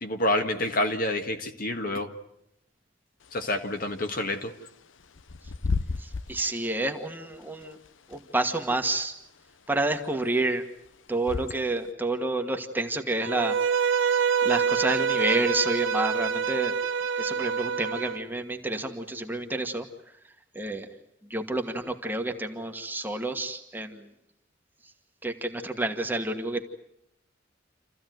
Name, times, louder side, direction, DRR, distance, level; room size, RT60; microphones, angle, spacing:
voice 1, 0.0-2.1 3.3-4.5, left 1 dB, 50° left, 5 dB, 1.6 m, -28 dB
Bird / Wind, 3.2-11.9, left 4 dB, 80° left, 0.8 m, -37 dB
voice 2, 6.0-7.8 8.1-9.1 9.7-10.6 11.1-13.6 14.4-16.7 17.2-19.9 20.5-20.9 21.3-24.1 25.2-26.6, right 2 dB, 10° right, 4 dB, 1.5 m, -29 dB
Bowed string instrument, 13.2-18.2, right 6 dB, 80° right, 1.0 m, -26 dB
28.0 x 15.0 x 9.3 m, 0.81 s
head